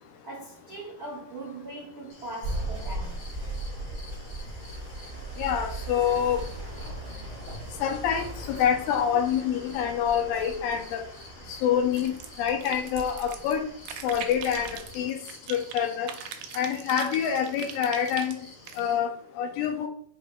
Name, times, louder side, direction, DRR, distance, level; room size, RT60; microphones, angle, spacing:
voice 1, 0.2-3.2, right 2 dB, 70° right, 1.1 m, -40 dB
sound 1, 2.1-19.0, left 2 dB, 65° left, 2.2 m, -51 dB
sound 2, 2.4-15.1, right 1 dB, 30° right, 0.8 m, -39 dB
voice 2, 5.4-6.4 7.8-11.0 11.5-12.1 12.4-13.7 14.0-14.7 15.0-15.2 15.5-16.1 16.6-18.4 18.8-19.1 19.4-19.9, left 8 dB, 85° left, 2.3 m, -26 dB
sound 3, 11.9-13.5 13.9-15.8 16.1-18.8, right 9 dB, 90° right, 1.7 m, -40 dB
5.4 x 3.2 x 2.2 m
omnidirectional pair, 4.0 m